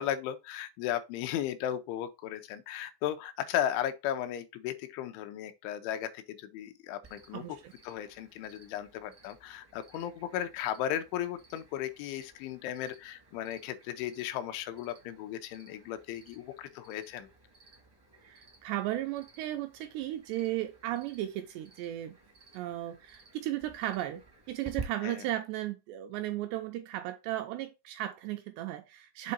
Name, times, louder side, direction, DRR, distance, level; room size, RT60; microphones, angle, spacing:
voice 1, 0.0-7.6 7.8-17.3 25.0-25.2, left 11 dB, 90° left, 3.1 m, -35 dB
Cricket, 7.0-24.8, right 3 dB, 40° right, 0.3 m, -53 dB
voice 2, 7.3-7.7 18.2-22.2 22.5-29.3, right 14 dB, 85° right, 2.4 m, -35 dB
7.5 x 3.9 x 4.0 m
omnidirectional pair, 5.3 m